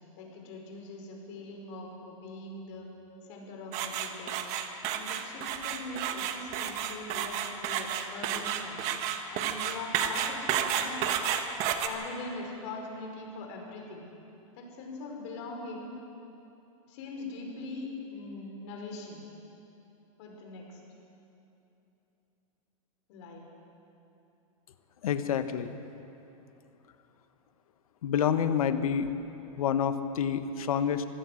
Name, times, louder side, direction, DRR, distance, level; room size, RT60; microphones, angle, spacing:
voice 1, 0.2-2.9 3.2-4.4 4.9-8.8 9.3-11.1 11.8-14.0 14.5-15.9 16.9-19.2 20.2-20.8 23.1-23.4, left 3 dB, 55° left, 1 dB, 5.0 m, -41 dB
sound 1, 3.7-11.9, right 9 dB, 40° right, 1.5 m, -31 dB
voice 2, 25.0-25.8 28.0-29.1 29.6-31.0, left 8 dB, 85° left, 10 dB, 1.3 m, -28 dB
25.5 x 16.0 x 6.4 m, 2.9 s
supercardioid pair, 145°, 18 cm